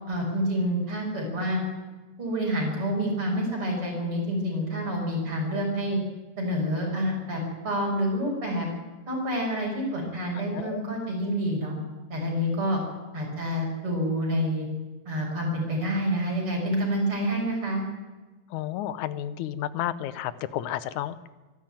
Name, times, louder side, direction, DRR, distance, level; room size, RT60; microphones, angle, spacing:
voice 1, 0.1-1.6 2.2-6.0 6.4-8.7 9.1-11.7 12.1-12.8 13.1-14.7 15.1-17.8, equal, 45° right, -1 dB, 7.1 m, -28 dB
voice 2, 18.5-21.3, left 12 dB, 90° left, 16 dB, 2.3 m, -32 dB
24.0 x 12.0 x 9.1 m, 1.3 s
omnidirectional pair, 3.3 m